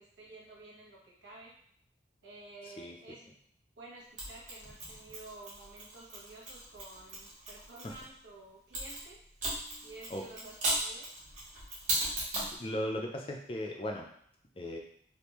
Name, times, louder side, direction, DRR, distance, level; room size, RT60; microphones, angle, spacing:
voice 1, 0.0-1.6 2.2-3.3 3.8-9.2 9.8-11.1, right 2 dB, 85° right, -4 dB, 1.1 m, -51 dB
Mechanisms, 4.2-8.0 8.7-12.6, right 1 dB, 40° right, 1.2 m, -37 dB
voice 2, 12.6-14.1 14.6-14.8, left 1 dB, 30° left, 1 dB, 0.4 m, -37 dB
3.4 x 2.5 x 3.0 m, 0.66 s
head